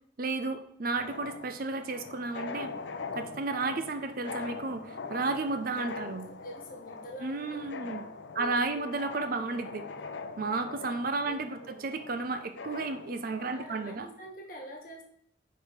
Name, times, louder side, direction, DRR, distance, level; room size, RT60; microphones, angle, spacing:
voice 1, 0.2-2.7 3.1-6.3 7.2-8.1 8.3-9.8 10.4-14.1, right 3 dB, 50° right, 9 dB, 0.5 m, -33 dB
sound 1, 1.0-14.0, left 4 dB, 70° left, 0.6 m, -43 dB
voice 2, 6.0-8.0 8.4-8.9 9.3-10.1 11.2-11.8 13.5-15.0, equal, 50° left, 1 dB, 1.5 m, -46 dB
4.7 x 4.6 x 5.1 m, 0.71 s
head